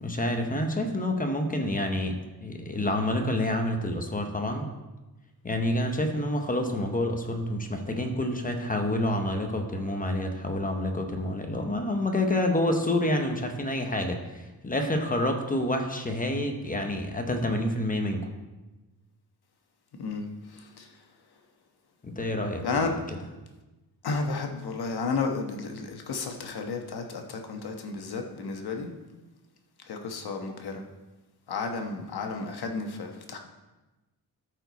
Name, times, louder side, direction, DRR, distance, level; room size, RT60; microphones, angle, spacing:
voice 1, 0.0-4.7 5.4-18.2 22.0-22.6 23.1-23.2, left 1 dB, 20° left, 4 dB, 0.8 m, -28 dB
voice 2, 20.0-20.9 22.6-22.9 24.0-28.9 29.8-30.8 31.5-33.4, left 4 dB, 75° left, 4 dB, 1.2 m, -32 dB
13.5 x 4.6 x 4.0 m, 1.1 s
wide cardioid pair, 160°, 39 cm